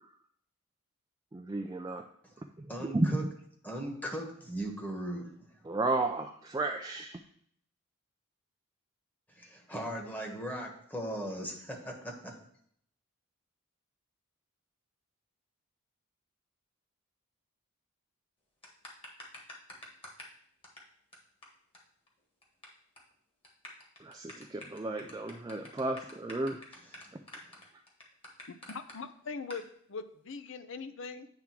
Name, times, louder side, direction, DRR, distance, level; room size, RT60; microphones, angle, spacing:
voice 1, 1.3-2.0 2.6-3.2 5.6-7.2 24.0-26.6, right 2 dB, 15° right, 3 dB, 0.4 m, -33 dB
voice 2, 2.7-3.2 3.6-5.3 9.3-12.3 26.9-27.1, right 1 dB, 10° left, 1 dB, 1.2 m, -38 dB
sound 1, 18.6-20.4 20.6-20.8 21.1-21.2 21.4-21.5 21.7-21.8 22.1-22.7 23.0-23.1 23.4-28.9 29.5-29.6, left 1 dB, 25° left, 1.6 m, -48 dB
voice 3, 28.7-31.3, left 4 dB, 60° left, 11 dB, 0.6 m, -41 dB
8.8 x 3.6 x 5.9 m, 0.66 s
head